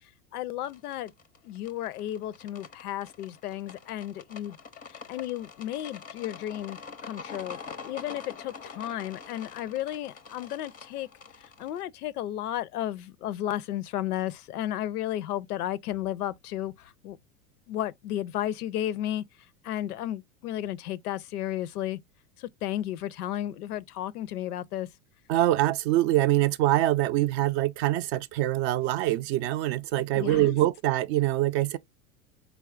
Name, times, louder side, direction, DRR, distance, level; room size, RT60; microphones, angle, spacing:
voice 1, 0.3-1.1 1.4-4.6 4.9-7.6 7.8-11.1 11.4-17.2 17.7-19.3 19.6-22.0 22.4-24.9 30.1-30.6, left 12 dB, 85° left, 0.5 m, -33 dB
sound 1, 0.6-11.8, left 5 dB, 20° left, 0.4 m, -45 dB
voice 2, 25.3-31.8, right 15 dB, 50° right, 0.4 m, -24 dB
4.2 x 3.4 x 2.3 m
hypercardioid pair, 100°, 44 cm